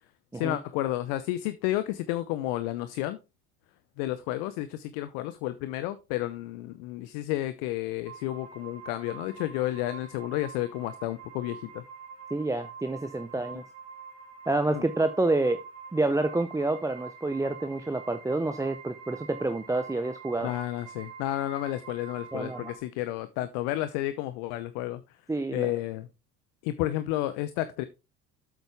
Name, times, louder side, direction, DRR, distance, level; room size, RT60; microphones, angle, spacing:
voice 1, 0.3-3.2 4.0-11.8 14.7-14.8 20.4-25.0 25.5-26.1 26.6-27.8, left 15 dB, 60° left, 0.9 m, -31 dB
sound 1, 8.1-22.8, right 6 dB, 90° right, 2.0 m, -46 dB
voice 2, 12.3-13.6 14.5-15.6 15.9-20.5 22.3-22.7 25.3-25.7, right 2 dB, 5° right, 0.7 m, -28 dB
8.2 x 8.1 x 3.5 m
figure-of-eight pair, 65°, 45 cm